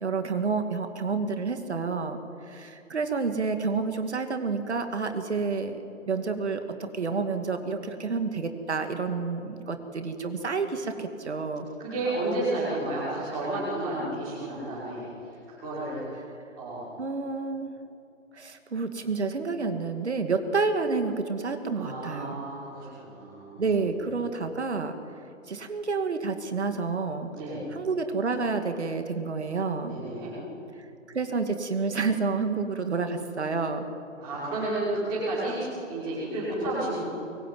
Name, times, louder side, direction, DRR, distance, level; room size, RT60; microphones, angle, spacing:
voice 1, 0.0-5.8 6.1-11.7 17.0-17.7 18.3-22.4 23.6-25.0 25.5-27.3 27.7-30.0 30.8-30.9 31.1-33.9, right 4 dB, 55° right, 7 dB, 2.3 m, -29 dB
voice 2, 11.8-16.0 16.5-16.9 21.7-24.1 27.3-27.6 29.9-30.4 34.2-37.0, right 2 dB, 10° right, -10 dB, 5.9 m, -32 dB
24.0 x 22.5 x 9.3 m, 2.7 s
hypercardioid pair, 175°, 40 cm